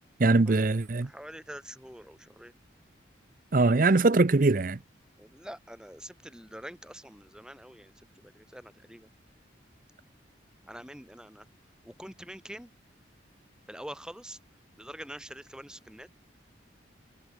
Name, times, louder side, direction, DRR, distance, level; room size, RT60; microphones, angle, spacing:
voice 1, 0.2-1.1 3.5-4.8, right 3 dB, 45° right, 0.6 m, -22 dB
voice 2, 1.0-2.5 5.2-7.9 8.2-9.1 10.7-11.4 11.8-12.7 13.7-14.4 14.8-16.1, equal, 5° right, 2.9 m, -45 dB
head